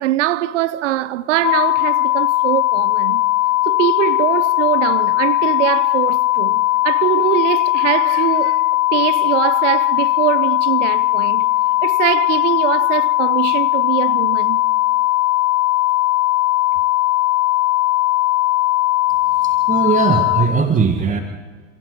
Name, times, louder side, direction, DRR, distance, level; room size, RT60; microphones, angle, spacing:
voice 1, 0.0-3.2 3.7-8.7 8.9-11.5 11.8-14.6, right 14 dB, 65° right, 0.9 m, -22 dB
sound 1, 1.4-20.5, left 17 dB, 40° left, 2.2 m, -18 dB
voice 2, 19.4-21.2, right 5 dB, 20° right, 1.6 m, -19 dB
27.5 x 27.5 x 3.8 m
figure-of-eight pair, 85°, 39 cm